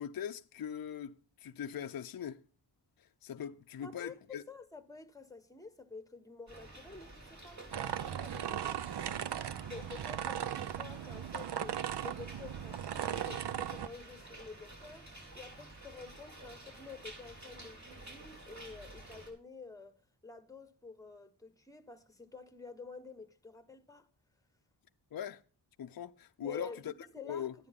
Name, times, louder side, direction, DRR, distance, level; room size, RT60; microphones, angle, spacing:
voice 1, 0.0-2.4 3.0-4.4 25.1-25.4 25.8-26.9 27.2-27.5, left 9 dB, 55° left, 0.6 m, -41 dB
voice 2, 3.8-8.8 9.7-15.1 15.3-24.1 26.4-27.5, left 4 dB, 10° left, 1.2 m, -50 dB
sound 1, 6.5-19.3, right 1 dB, 40° right, 4.5 m, -51 dB
sound 2, 7.7-13.9, right 9 dB, 65° right, 0.6 m, -38 dB
12.5 x 9.8 x 3.6 m
wide cardioid pair, 90°, 43 cm